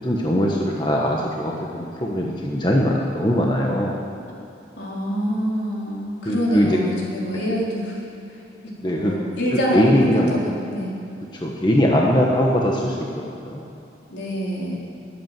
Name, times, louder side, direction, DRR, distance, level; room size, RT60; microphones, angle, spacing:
voice 1, 0.0-4.0 6.2-6.8 8.8-9.2 9.5-10.3 11.4-13.6, equal, 25° left, -2 dB, 1.3 m, -21 dB
voice 2, 4.8-8.0 8.9-11.0 14.1-14.8, equal, 70° left, -4 dB, 4.0 m, -25 dB
20.5 x 8.5 x 7.6 m, 2.8 s
head